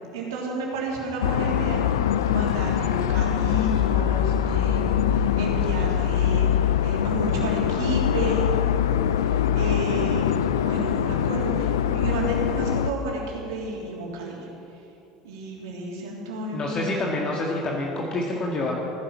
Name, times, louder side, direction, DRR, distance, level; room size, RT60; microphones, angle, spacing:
voice 1, 0.1-1.8 2.3-8.5 8.8-14.5 15.2-17.3, right 2 dB, 70° right, -2 dB, 3.4 m, -32 dB
sound 1, 1.2-12.9, left 9 dB, 75° left, 0.5 m, -23 dB
voice 2, 16.5-18.7, left 2 dB, 40° left, -2 dB, 2.0 m, -27 dB
15.5 x 10.5 x 7.2 m, 2.8 s
hypercardioid pair, 70°, 2 cm